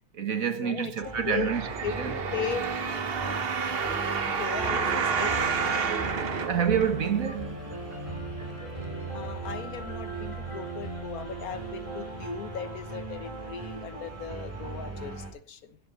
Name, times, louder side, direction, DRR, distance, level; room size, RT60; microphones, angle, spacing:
voice 1, 0.0-1.6 2.0-2.2 6.4-7.6, right 7 dB, 65° right, 1.7 m, -28 dB
voice 2, 0.5-0.9 1.3-1.5 1.8-2.7 4.3-5.4 9.1-15.8, left 7 dB, 75° left, 1.6 m, -37 dB
sound 1, 1.0-15.3, right 2 dB, 20° right, 4.6 m, -38 dB
sound 2, 1.4-7.3 7.9-8.0, right 6 dB, 45° right, 1.1 m, -30 dB
Piano, 2.0-10.7, right 1 dB, 30° left, 2.6 m, -45 dB
16.0 x 8.2 x 5.5 m
omnidirectional pair, 1.5 m